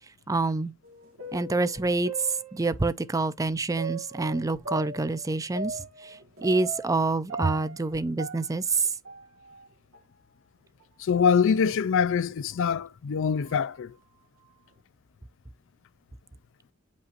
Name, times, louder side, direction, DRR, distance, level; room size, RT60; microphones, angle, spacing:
voice 1, 0.3-0.7 1.3-8.9, right 3 dB, 15° right, 0.4 m, -27 dB
sound 1, 0.8-3.0 3.8-7.0 7.3-9.7 9.9-10.0 10.8-10.9 11.7-11.9 12.5-12.6 13.4-13.7, right 3 dB, 70° right, 1.7 m, -40 dB
voice 2, 11.0-13.9, left 6 dB, 60° left, 0.4 m, -24 dB
8.4 x 5.3 x 2.5 m
head